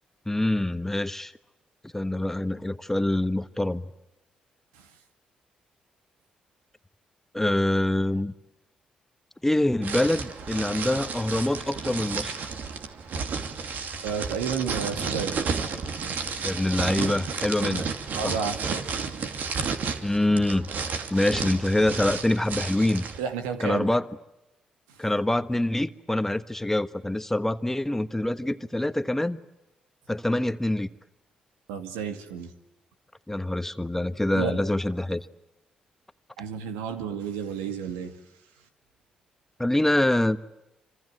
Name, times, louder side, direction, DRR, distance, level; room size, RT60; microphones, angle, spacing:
voice 1, 0.3-1.3 1.9-3.8 7.3-8.3 9.4-12.4 16.4-17.8 18.2-18.4 20.0-20.7 21.1-23.1 23.6-24.1 25.0-29.4 30.1-30.9 33.3-35.3 39.6-40.4, left 1 dB, 10° left, 1.4 m, -25 dB
sound 1, 9.8-23.2, right 5 dB, 60° right, 2.7 m, -32 dB
voice 2, 14.0-15.4 17.6-17.8 18.2-18.8 23.2-23.9 31.7-32.5 34.3-34.6 36.4-38.2, right 6 dB, 80° right, 2.3 m, -31 dB
26.5 x 26.5 x 7.9 m
hypercardioid pair, 45°, 3 cm